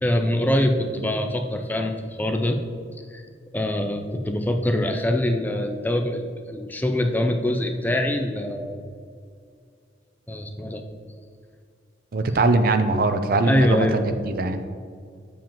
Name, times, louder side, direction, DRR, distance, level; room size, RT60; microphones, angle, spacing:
voice 1, 0.0-2.6 3.1-3.2 3.5-8.8 10.3-10.8 13.5-14.0, left 1 dB, 10° left, 4 dB, 0.4 m, -24 dB
voice 2, 12.1-14.6, right 2 dB, 50° right, 8 dB, 0.5 m, -22 dB
7.3 x 7.2 x 2.9 m, 2.2 s
head